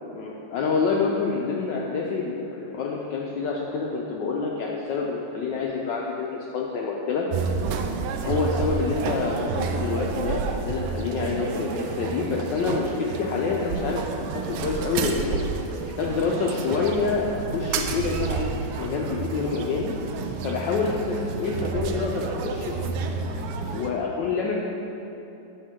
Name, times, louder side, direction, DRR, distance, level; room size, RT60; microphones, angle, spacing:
voice 1, 0.1-7.3 8.2-15.4 16.0-19.9 20.4-22.9 23.7-24.5, left 4 dB, 80° left, -2 dB, 1.0 m, -27 dB
sound 1, 7.3-23.9, right 5 dB, 85° right, 1.5 m, -30 dB
8.0 x 5.7 x 3.6 m, 3.0 s
omnidirectional pair, 2.4 m